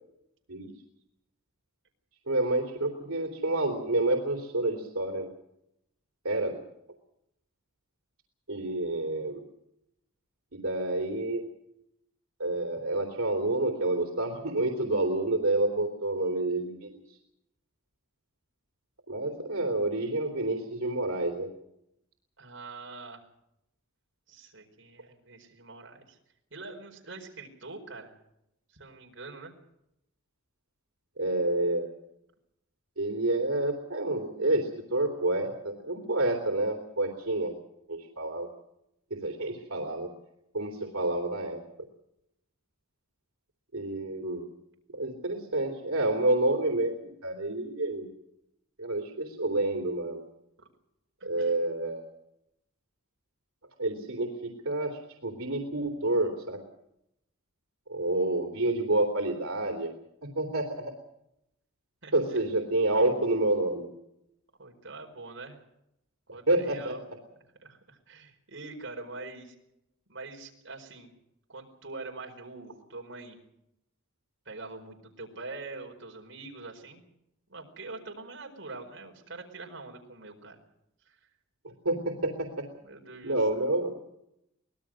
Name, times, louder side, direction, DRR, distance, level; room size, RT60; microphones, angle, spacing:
voice 1, 2.3-5.3 6.2-6.7 8.5-9.4 10.5-11.4 12.4-17.0 19.1-21.5 31.2-31.9 33.0-37.5 37.9-38.5 39.1-40.1 40.5-41.6 43.7-44.5 44.9-48.1 48.8-50.2 51.2-52.1 53.8-56.6 57.9-59.9 60.3-60.9 62.1-63.9 66.5-67.2 81.6-82.7 83.2-83.9, right 2 dB, 85° right, 3 dB, 3.2 m, -29 dB
voice 2, 22.4-23.2 24.3-26.2 26.5-28.1 28.7-29.5 50.6-50.7 51.2-51.6 62.0-62.4 64.6-65.6 66.3-67.0 67.3-69.5 70.1-71.1 71.5-73.4 74.4-77.0 77.5-80.6 81.1-81.2 82.8-83.4, right 3 dB, 60° right, 2 dB, 4.9 m, -44 dB
24.5 x 19.0 x 6.3 m, 0.81 s
head